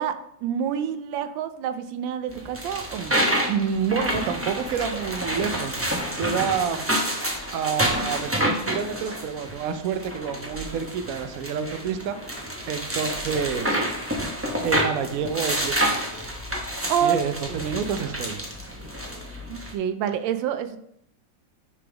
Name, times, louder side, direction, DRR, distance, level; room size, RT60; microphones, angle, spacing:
voice 1, 0.0-3.2 16.9-17.2 17.5-17.6 19.5-20.8, right 9 dB, 90° right, 10 dB, 1.3 m, -27 dB
sound 1, 2.3-19.7, equal, 20° right, 0.4 m, -29 dB
voice 2, 3.5-5.9 6.2-6.9 7.5-13.8 14.6-16.2 17.0-18.4, right 7 dB, 70° right, 9 dB, 0.8 m, -28 dB
9.9 x 3.5 x 3.4 m, 0.73 s
omnidirectional pair, 2.0 m